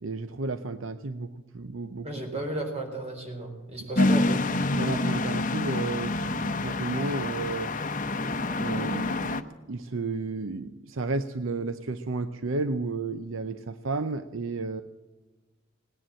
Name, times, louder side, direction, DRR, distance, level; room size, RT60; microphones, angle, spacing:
voice 1, 0.0-2.1 3.9-4.1 4.7-7.7 8.6-14.8, right 3 dB, 70° right, 10 dB, 0.7 m, -32 dB
voice 2, 2.0-4.4, right 1 dB, 30° right, 2 dB, 4.0 m, -34 dB
sound 1, 4.0-9.4, left 2 dB, 40° left, 0.8 m, -27 dB
18.5 x 10.0 x 7.7 m, 1.2 s
head